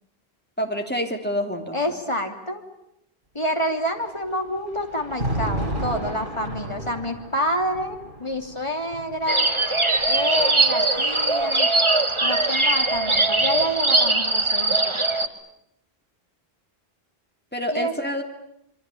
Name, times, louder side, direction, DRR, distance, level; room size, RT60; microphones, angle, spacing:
voice 1, 0.6-2.0 17.5-18.2, equal, 10° left, 4 dB, 3.2 m, -27 dB
voice 2, 1.7-2.6 3.3-9.5 10.1-11.7 12.2-15.0 17.7-17.9, equal, 30° left, 4 dB, 3.0 m, -28 dB
Thunder, 4.0-11.2 12.2-14.0, right 1 dB, 50° right, 3.8 m, -34 dB
sound 1, 9.3-15.3, right 2 dB, 30° right, 1.5 m, -21 dB
27.0 x 23.5 x 8.7 m, 0.77 s
omnidirectional pair, 1.0 m